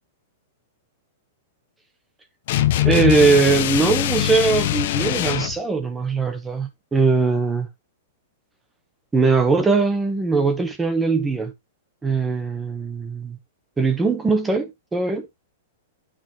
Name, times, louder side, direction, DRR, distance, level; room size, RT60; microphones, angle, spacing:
sound 1, 2.5-5.6, left 12 dB, 40° left, 1.0 m, -22 dB
voice 1, 2.8-7.7 9.1-11.5 12.0-13.4 13.8-15.3, right 4 dB, 5° right, 1.1 m, -20 dB
8.9 x 4.3 x 4.4 m
supercardioid pair, 180°, 0 cm